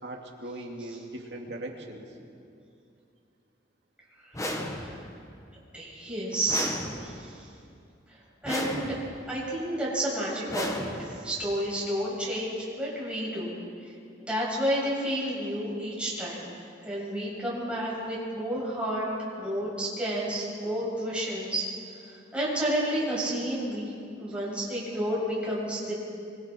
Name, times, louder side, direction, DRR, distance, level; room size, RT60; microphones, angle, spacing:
voice 1, 0.0-2.0, right 1 dB, 70° right, 0 dB, 2.7 m, -39 dB
voice 2, 4.2-5.0 5.7-6.7 7.0-7.5 8.4-9.0 9.3-13.5 13.8-13.9 14.2-16.4 16.8-19.1 19.4-21.7 22.1-23.9 24.2-25.9, right 1 dB, 5° right, -7 dB, 7.3 m, -31 dB
sound 1, 4.3-5.2 6.5-7.4 8.4-9.3 10.5-11.4, left 1 dB, 20° left, 1.6 m, -34 dB
25.5 x 24.5 x 4.6 m, 2.5 s
head